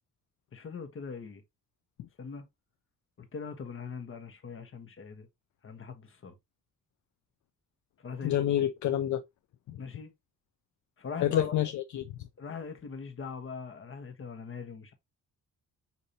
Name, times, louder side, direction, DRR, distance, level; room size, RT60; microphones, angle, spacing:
voice 1, 0.5-1.4 2.2-2.5 3.2-5.3 5.6-6.3 8.0-8.3 9.8-10.1 11.0-11.6 12.4-14.9, left 5 dB, 40° left, 1.1 m, -41 dB
voice 2, 8.2-9.2 9.7-9.8 11.2-12.0, left 11 dB, 60° left, 0.5 m, -28 dB
6.5 x 2.7 x 2.7 m
cardioid pair, 100°, 33 cm